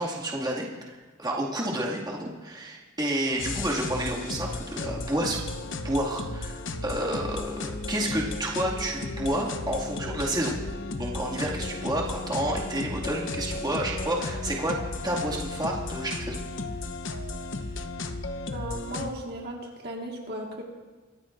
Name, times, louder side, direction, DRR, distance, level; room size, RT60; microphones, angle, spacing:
voice 1, 0.0-5.4 5.8-10.5 11.0-14.7 15.0-16.4, right 1 dB, 20° right, -4 dB, 2.1 m, -30 dB
sound 1, 3.4-19.1, left 2 dB, 65° left, 0.9 m, -34 dB
voice 2, 18.5-20.6, right 1 dB, 50° right, -1 dB, 1.7 m, -36 dB
24.5 x 14.5 x 2.6 m, 1.3 s
head